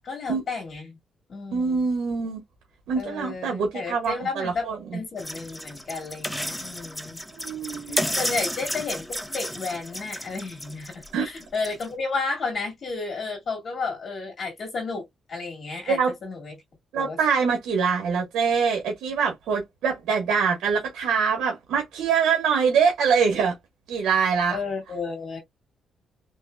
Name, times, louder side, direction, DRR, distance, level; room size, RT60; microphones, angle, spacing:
voice 1, 0.0-1.0 1.3-1.8 2.9-4.7 4.9-7.2 7.9-15.0 15.3-16.6 16.9-17.2 24.5-25.4, left 4 dB, 45° left, 1.6 m, -32 dB
voice 2, 1.5-2.4 2.9-4.8 7.3-8.0 11.1-11.3 15.9-16.1 16.9-23.6 23.9-24.6, right 6 dB, 90° right, 1.3 m, -24 dB
sound 1, 5.2-11.9, equal, 5° left, 0.6 m, -32 dB
3.9 x 3.0 x 2.2 m
cardioid pair, 120°, 0 cm